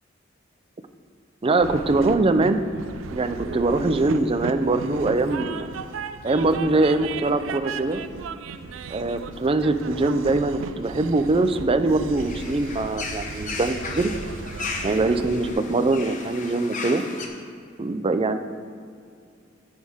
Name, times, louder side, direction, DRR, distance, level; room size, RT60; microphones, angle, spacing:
voice 1, 1.4-2.6 3.1-5.7 6.2-8.0 8.9-14.1 14.8-17.0 17.8-18.4, right 2 dB, 30° right, 9 dB, 0.5 m, -22 dB
Train, 1.6-15.5, right 5 dB, 90° right, 0.4 m, -36 dB
sound 1, 12.2-17.3, left 3 dB, 40° left, 1.0 m, -35 dB
15.0 x 6.4 x 3.6 m, 2.3 s
head